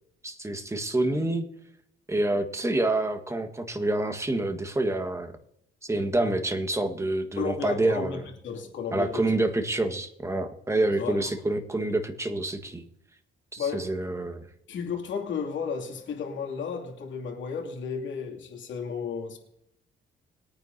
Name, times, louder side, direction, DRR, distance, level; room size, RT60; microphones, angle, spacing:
voice 1, 0.2-1.5 2.1-5.3 5.8-8.2 8.9-12.9 13.5-14.4, right 2 dB, 15° right, 6 dB, 1.5 m, -27 dB
voice 2, 7.4-9.2 11.0-11.3 13.6-13.9 14.7-19.4, left 6 dB, 70° left, 1 dB, 2.6 m, -33 dB
21.5 x 9.6 x 2.8 m, 0.76 s
cardioid pair, 90°, 20 cm